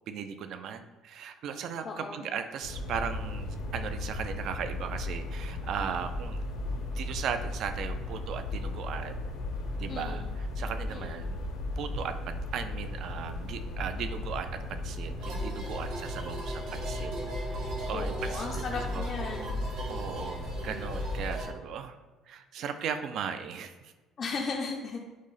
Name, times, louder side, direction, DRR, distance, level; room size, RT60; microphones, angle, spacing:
voice 1, 0.1-6.4 6.7-9.2 9.8-11.4 11.8-19.1 19.9-22.0 22.3-23.9, right 7 dB, 50° right, 9 dB, 0.3 m, -37 dB
voice 2, 1.8-2.3 9.9-10.3 10.9-11.2 17.9-19.6 24.2-25.0, left 4 dB, 30° left, -1 dB, 0.4 m, -36 dB
sound 1, 2.6-21.5, left 2 dB, 80° left, 0.7 m, -36 dB
sound 2, 15.2-21.5, right 2 dB, 75° right, 1.3 m, -40 dB
6.2 x 2.1 x 3.9 m, 1.2 s
cardioid pair, 170°, 0 cm